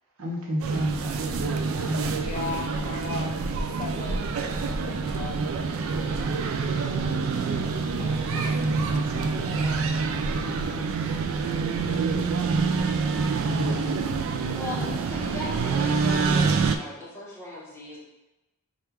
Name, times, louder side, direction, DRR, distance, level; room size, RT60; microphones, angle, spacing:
voice 1, 0.2-1.5 1.7-2.5 8.3-9.6 13.5-14.2 14.7-15.0, equal, 80° right, 0 dB, 0.8 m, -32 dB
sound 1, 0.6-16.8, right 4 dB, 65° right, 0.3 m, -26 dB
voice 2, 2.2-3.3 3.7-4.3 4.5-5.4 8.0-8.4 9.5-9.9, left 4 dB, 30° left, 0 dB, 0.3 m, -37 dB
voice 3, 14.5-18.0, left 1 dB, 10° left, -8 dB, 1.2 m, -38 dB
3.4 x 2.4 x 4.5 m, 1.0 s
head